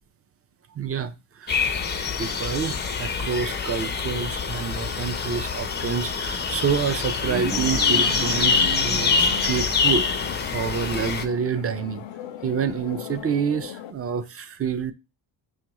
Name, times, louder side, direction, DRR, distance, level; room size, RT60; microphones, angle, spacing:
voice 1, 0.8-1.1 1.4-1.6 2.2-10.1 10.5-12.0 12.4-14.9, right 6 dB, 35° right, 0.4 m, -28 dB
sound 1, 1.5-11.3, left 5 dB, 25° left, 0.4 m, -25 dB
sound 2, 6.3-10.9, right 5 dB, 85° right, 0.9 m, -36 dB
sound 3, 7.5-13.9, left 10 dB, 75° left, 0.5 m, -38 dB
6.1 x 2.4 x 2.9 m
cardioid pair, 100°, 45 cm